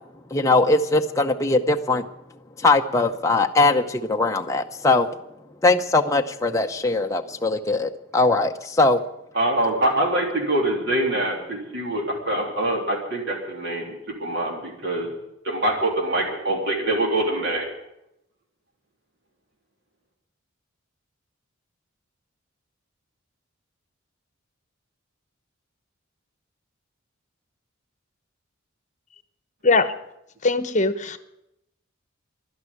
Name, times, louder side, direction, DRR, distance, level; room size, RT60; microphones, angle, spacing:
voice 1, 0.3-2.0 2.6-5.1 5.6-9.0, left 2 dB, 15° left, 4 dB, 0.7 m, -20 dB
voice 2, 9.3-15.1 15.4-17.7, right 1 dB, 55° right, 0 dB, 3.3 m, -24 dB
voice 3, 30.4-31.2, left 3 dB, 35° left, 12 dB, 1.0 m, -20 dB
12.0 x 11.0 x 9.9 m, 0.83 s
head